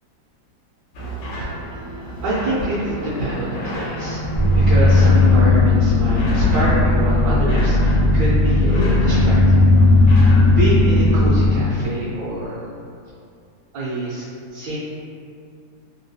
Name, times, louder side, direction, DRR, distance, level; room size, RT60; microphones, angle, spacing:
sound 1, 0.9-11.2, equal, 85° left, 1.5 m, -33 dB
voice 1, 1.4-4.2 4.5-9.6 10.2-12.6 13.7-14.8, right 1 dB, 75° right, -9 dB, 1.1 m, -26 dB
sound 2, 1.6-7.0, left 1 dB, 45° right, 0.5 m, -35 dB
sound 3, 4.3-11.5, left 2 dB, 35° left, 0.3 m, -15 dB
3.5 x 2.2 x 2.6 m, 2.4 s
omnidirectional pair, 2.2 m